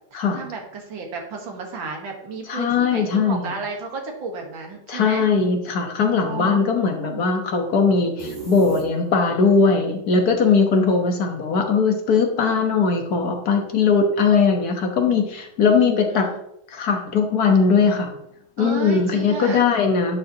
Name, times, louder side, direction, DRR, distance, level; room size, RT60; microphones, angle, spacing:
voice 1, 0.1-5.3 6.2-7.2 15.6-16.4 18.6-19.6, right 4 dB, 70° right, 2 dB, 2.1 m, -33 dB
voice 2, 2.5-3.5 4.9-16.3 16.7-18.1 18.6-20.2, left 5 dB, 55° left, 3 dB, 1.5 m, -19 dB
sound 1, 8.2-9.4, right 3 dB, 30° right, 3.2 m, -35 dB
11.0 x 6.5 x 2.9 m, 0.77 s
omnidirectional pair, 2.2 m